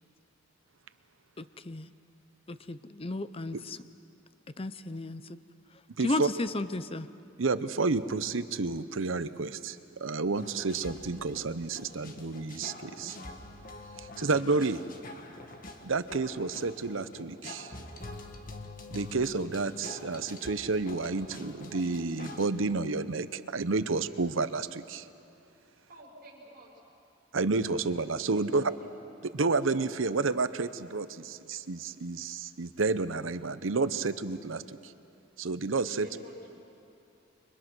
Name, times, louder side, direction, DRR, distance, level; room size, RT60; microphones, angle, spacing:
voice 1, 1.4-1.9 2.5-3.8 4.6-5.4 6.0-7.1, left 2 dB, 30° left, 13 dB, 0.6 m, -34 dB
voice 2, 6.0-6.3 7.4-13.2 14.0-14.8 15.8-17.7 18.9-25.1 27.3-28.6 29.2-34.9 35.4-36.1, right 3 dB, 75° right, 13 dB, 0.8 m, -30 dB
sound 1, 10.4-22.5, left 2 dB, 45° left, 1.8 m, -45 dB
voice 3, 25.9-26.7 28.3-29.1 36.0-36.5, right 1 dB, 45° right, -2 dB, 6.3 m, -50 dB
29.0 x 24.5 x 6.2 m, 2.7 s
head